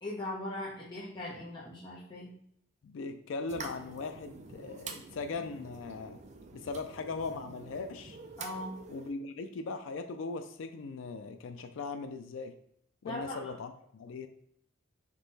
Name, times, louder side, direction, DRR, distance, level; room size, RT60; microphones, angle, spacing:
voice 1, 0.0-2.3 8.4-8.7 13.1-13.5, left 1 dB, 25° left, -6 dB, 0.8 m, -39 dB
voice 2, 2.8-6.2 6.5-8.2 8.9-12.5 13.0-14.3, left 4 dB, 65° left, 8 dB, 0.3 m, -39 dB
sound 1, 3.5-9.1, right 4 dB, 35° right, 0.4 m, -47 dB
3.7 x 2.9 x 4.0 m, 0.67 s
head